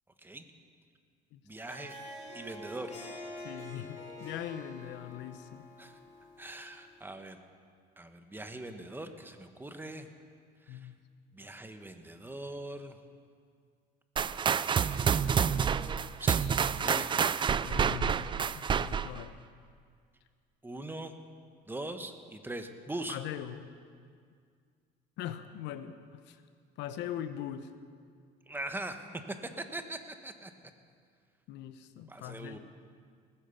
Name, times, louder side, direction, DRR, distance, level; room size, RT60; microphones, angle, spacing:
voice 1, 1.4-1.9 2.3-2.9 5.8-5.9 6.4-7.4 8.0-10.1 10.7-10.9 11.3-13.0 14.6-16.4 16.8-17.1 20.6-21.1 21.7-23.2 28.5-29.1 29.4-30.5 32.1-32.6, right 2 dB, 10° right, 7 dB, 1.2 m, -41 dB
Harp, 1.5-6.9, left 1 dB, 40° left, 5.4 m, -46 dB
voice 2, 3.4-5.7 10.7-10.9 16.8-17.1 17.6-18.2 18.5-19.3 23.1-23.6 25.2-26.4 26.8-27.7 31.5-32.6, left 11 dB, 80° left, 11 dB, 0.9 m, -41 dB
sound 1, 14.2-19.2, right 7 dB, 25° right, 0.4 m, -28 dB
18.5 x 10.5 x 7.1 m, 2.1 s
cardioid pair, 110°, 18 cm